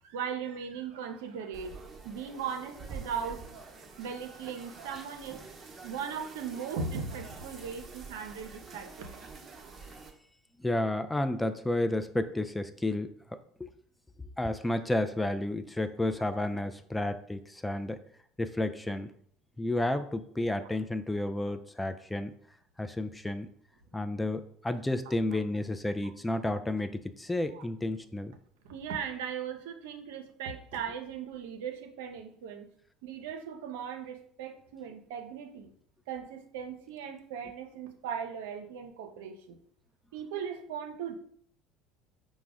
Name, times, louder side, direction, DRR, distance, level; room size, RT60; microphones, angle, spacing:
voice 1, 0.0-1.7 2.0-3.4 3.9-5.4 5.8-9.3 16.3-16.4 27.5-27.6 28.6-32.7 33.0-35.7 36.1-39.6 40.1-41.1, right 7 dB, 80° right, 6 dB, 0.5 m, -38 dB
sound 1, 1.5-10.1, right 4 dB, 35° right, 0.8 m, -47 dB
voice 2, 10.6-13.7 14.4-18.0 18.4-19.1 19.6-22.3 22.8-23.5 23.9-28.4, left 1 dB, 10° left, 9 dB, 0.3 m, -31 dB
4.8 x 2.1 x 3.5 m, 0.63 s
hypercardioid pair, 80°, 0 cm